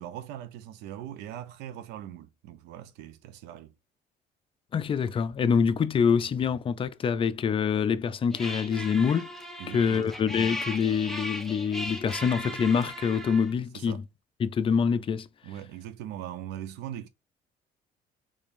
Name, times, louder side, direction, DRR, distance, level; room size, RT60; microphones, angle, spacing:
voice 1, 0.0-3.7 9.6-10.1 13.7-14.0 15.4-17.1, right 11 dB, 90° right, 0.6 m, -40 dB
voice 2, 4.7-9.3 9.7-14.0 14.4-15.3, left 6 dB, 30° left, 0.4 m, -25 dB
sound 1, 8.3-13.5, equal, ahead, 0.8 m, -37 dB
3.5 x 3.4 x 2.5 m
cardioid pair, 110°, 17 cm